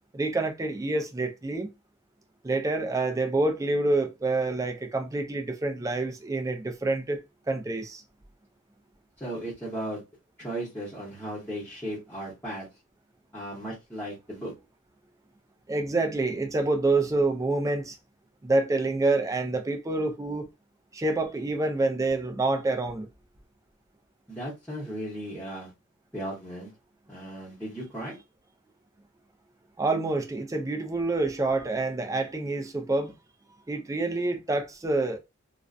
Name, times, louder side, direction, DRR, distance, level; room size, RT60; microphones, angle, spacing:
voice 1, 0.1-1.7 2.4-7.2 7.5-8.0 15.7-18.0 18.4-20.5 20.9-23.1 29.8-33.2 33.7-35.2, right 2 dB, 15° right, 0.3 m, -27 dB
voice 2, 9.2-10.0 10.4-12.7 13.3-14.5 24.3-25.7 26.1-26.7 27.1-28.2, right 1 dB, 5° left, 0.8 m, -36 dB
2.4 x 2.1 x 2.4 m
head